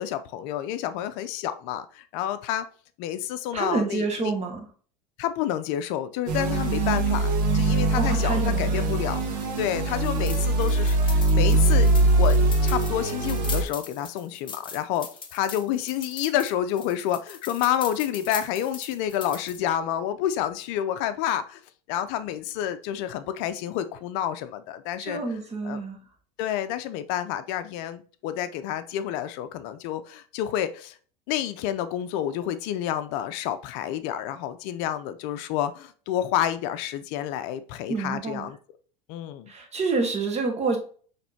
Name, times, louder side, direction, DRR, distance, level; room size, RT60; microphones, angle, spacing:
voice 1, 0.0-2.7 3.0-4.3 5.2-11.9 12.2-21.6 21.9-25.2 25.6-25.8 26.4-31.0 31.3-38.6 39.1-39.5, left 11 dB, 60° left, 0.5 m, -29 dB
voice 2, 3.5-4.6 7.9-8.9 25.0-26.0 37.9-38.5 39.5-40.8, right 4 dB, 30° right, 1.5 m, -28 dB
sound 1, 6.3-13.6, right 2 dB, 80° right, 1.3 m, -22 dB
sound 2, 10.0-19.6, left 5 dB, 25° left, 0.9 m, -40 dB
6.0 x 3.2 x 2.7 m
hypercardioid pair, 95°, 21 cm